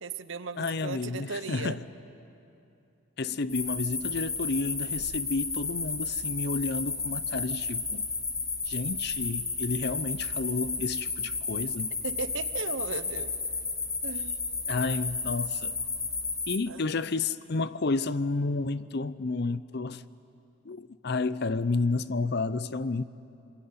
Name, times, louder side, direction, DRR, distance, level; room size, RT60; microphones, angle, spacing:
voice 1, 0.0-1.8 12.0-13.3 14.0-14.4 16.7-16.9, right 4 dB, 65° right, 1.0 m, -36 dB
voice 2, 0.6-1.8 3.2-8.1 8.7-11.9 14.7-15.7 16.5-20.0 20.6-23.0, left 3 dB, 50° left, 0.6 m, -31 dB
sound 1, 3.5-16.6, left 4 dB, 15° left, 1.5 m, -32 dB
27.0 x 22.5 x 9.6 m
head